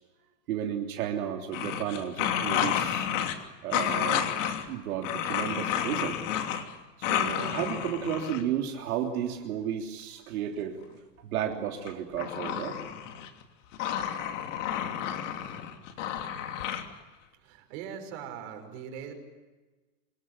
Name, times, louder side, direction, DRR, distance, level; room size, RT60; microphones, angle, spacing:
voice 1, 0.5-3.1 3.6-4.3 4.7-6.2 7.0-10.8 11.2-12.8, right 9 dB, 60° right, 1 dB, 3.5 m, -33 dB
sound 1, 1.5-3.4 3.7-4.7 5.0-6.7 7.0-8.4 11.9-13.4 13.7-16.8, left 9 dB, 50° left, 3.0 m, -30 dB
voice 2, 17.3-19.1, right 8 dB, 40° right, 5 dB, 6.1 m, -41 dB
26.0 x 21.5 x 9.9 m, 1.2 s
supercardioid pair, 165°, 48 cm